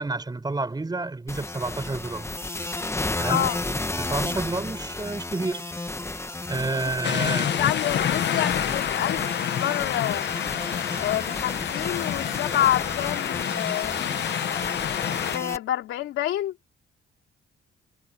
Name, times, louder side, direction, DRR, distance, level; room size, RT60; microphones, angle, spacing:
voice 1, 0.0-2.3 3.2-3.5 4.0-5.6 6.5-7.5, right 3 dB, 20° right, 5.7 m, -29 dB
sound 1, 1.3-15.6, left 2 dB, 15° left, 1.5 m, -33 dB
voice 2, 3.3-3.6 4.2-4.4 6.7-7.0 7.6-10.3 11.0-14.0 15.2-16.5, left 13 dB, 85° left, 3.0 m, -28 dB
sound 2, 7.0-15.4, left 10 dB, 60° left, 1.2 m, -28 dB
cardioid pair, 90°, 20 cm